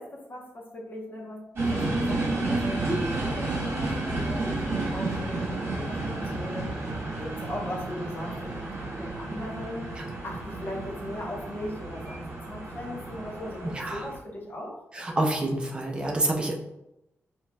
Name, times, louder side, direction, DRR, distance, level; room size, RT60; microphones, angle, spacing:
voice 1, 0.0-9.9 10.2-14.8, left 1 dB, 40° left, -3 dB, 1.0 m, -39 dB
sound 1, 1.6-14.2, right 2 dB, 50° right, 1.3 m, -31 dB
voice 2, 15.2-16.5, right 1 dB, 20° right, 0 dB, 0.6 m, -27 dB
5.3 x 3.0 x 2.3 m, 0.88 s
wide cardioid pair, 180°, 5 cm